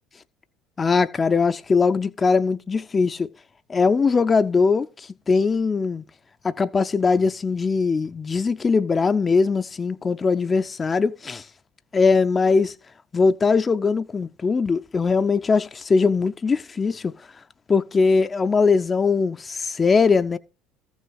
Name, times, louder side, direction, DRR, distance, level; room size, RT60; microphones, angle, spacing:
voice 1, 0.8-3.3 3.7-6.0 6.4-11.5 11.9-12.7 13.1-17.1 17.7-20.4, left 4 dB, 30° left, 0.5 m, -21 dB
14.0 x 6.2 x 4.8 m
hypercardioid pair, 75°, 0 cm